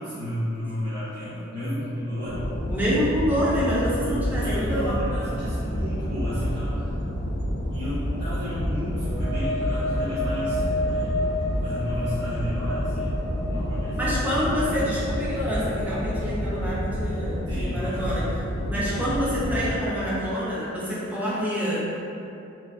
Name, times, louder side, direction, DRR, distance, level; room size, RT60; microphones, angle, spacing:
voice 1, 0.0-2.4 3.7-6.9 7.7-11.3 11.6-14.4 17.5-18.1, equal, 60° right, -16 dB, 0.9 m, -33 dB
sound 1, 2.2-19.7, equal, 55° left, 0.3 m, -29 dB
voice 2, 2.7-4.9 14.0-18.3 18.7-21.9, equal, 10° right, -9 dB, 0.5 m, -27 dB
sound 2, 8.9-16.4, left 1 dB, 90° right, 1.2 m, -32 dB
3.1 x 2.2 x 2.4 m, 2.7 s
head